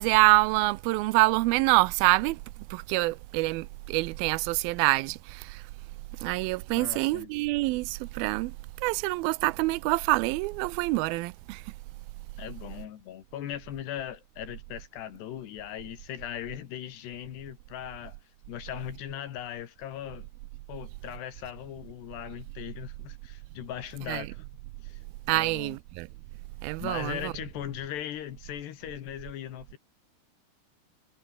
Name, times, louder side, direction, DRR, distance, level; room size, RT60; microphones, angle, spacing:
voice 1, 0.0-2.4 2.7-5.6 6.2-8.5 8.8-11.6 24.1-24.3 25.3-26.1 26.6-27.3, right 21 dB, 80° right, 2.3 m, -26 dB
voice 2, 6.8-7.3 12.4-18.2 18.5-20.3 20.7-24.4 24.8-25.0 25.3-25.8 26.8-29.8, left 11 dB, 80° left, 4.1 m, -39 dB
omnidirectional pair, 4.7 m